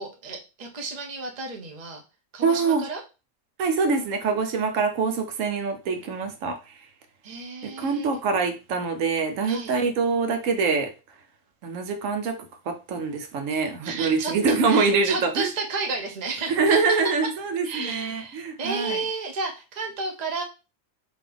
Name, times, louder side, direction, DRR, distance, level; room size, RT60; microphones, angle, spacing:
voice 1, 0.0-2.0 2.3-3.0 7.2-8.1 9.4-9.8 13.5-17.0 17.6-20.4, right 4 dB, 35° right, 0.9 m, -32 dB
voice 2, 2.4-2.8 3.6-6.6 7.6-10.9 11.6-12.4 12.7-15.5 16.5-19.0, right 4 dB, 85° right, 1.1 m, -24 dB
3.9 x 2.8 x 3.4 m
omnidirectional pair, 1.3 m